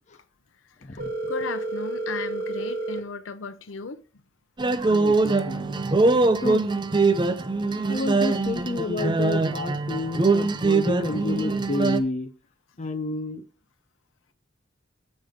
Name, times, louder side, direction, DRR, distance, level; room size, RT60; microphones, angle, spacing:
voice 1, 0.8-4.0 7.8-8.0, left 4 dB, 85° left, 0.7 m, -36 dB
Telephone, 1.0-3.0, right 3 dB, 50° right, 1.7 m, -30 dB
sound 1, 4.6-12.0, right 3 dB, 25° right, 0.5 m, -23 dB
voice 2, 4.8-5.8 6.4-6.6 7.9-12.3 12.8-13.4, left 2 dB, 35° left, 0.7 m, -30 dB
7.5 x 5.3 x 5.1 m
head